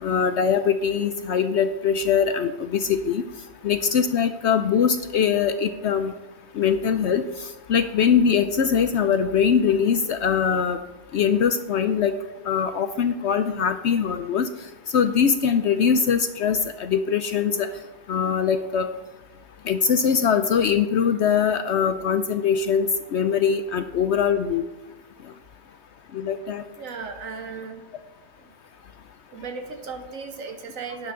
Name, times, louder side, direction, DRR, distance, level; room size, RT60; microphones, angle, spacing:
voice 1, 0.0-3.2 3.6-6.1 6.6-7.2 7.7-10.8 11.1-12.1 12.5-14.5 14.9-17.7 18.1-18.9 19.7-24.6 26.1-26.6, left 7 dB, 65° left, 9 dB, 0.8 m, -22 dB
voice 2, 26.8-27.9 28.4-28.5 29.3-31.1, right 5 dB, 80° right, 5 dB, 1.7 m, -36 dB
12.0 x 9.2 x 3.7 m, 1.1 s
omnidirectional pair, 1.4 m